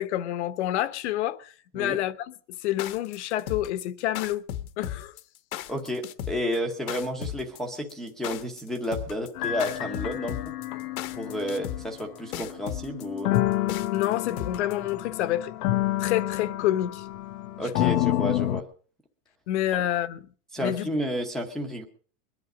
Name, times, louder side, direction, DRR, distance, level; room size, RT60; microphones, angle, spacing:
voice 1, 0.0-2.3 2.6-4.4 4.8-5.1 13.9-15.5 16.0-17.1 17.8-17.9 19.5-20.3 20.6-20.9, left 13 dB, 50° left, 1.0 m, -28 dB
sound 1, 2.6-14.9, left 11 dB, 65° left, 1.2 m, -35 dB
voice 2, 5.7-10.5 11.2-13.3 17.6-18.7 19.8-19.9 20.5-21.8, equal, ahead, 0.8 m, -31 dB
sound 2, 9.4-18.6, left 15 dB, 90° left, 0.9 m, -29 dB
22.0 x 10.5 x 5.0 m
supercardioid pair, 175°, 45 cm